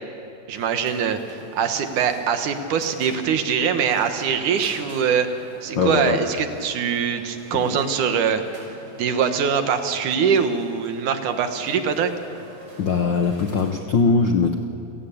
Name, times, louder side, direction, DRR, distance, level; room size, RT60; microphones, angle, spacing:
sound 1, 0.5-13.8, equal, 20° right, 5.9 m, -46 dB
voice 1, 0.5-5.3 5.6-8.4 9.0-12.1, right 7 dB, 85° right, 7 dB, 2.9 m, -23 dB
voice 2, 5.7-6.2 7.5-7.7 12.8-14.5, left 4 dB, 70° left, 5 dB, 1.1 m, -21 dB
29.0 x 17.5 x 8.5 m, 2.7 s
omnidirectional pair, 3.5 m